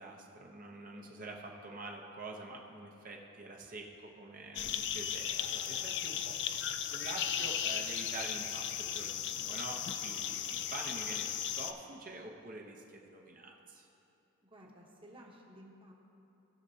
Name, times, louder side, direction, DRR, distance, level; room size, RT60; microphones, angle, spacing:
voice 1, 0.0-13.9, right 2 dB, 40° right, 0 dB, 0.7 m, -46 dB
sound 1, 4.6-11.7, left 9 dB, 55° left, 0.4 m, -36 dB
voice 2, 14.4-15.9, equal, 25° right, -1 dB, 1.1 m, -55 dB
18.5 x 6.5 x 2.8 m, 2.8 s
head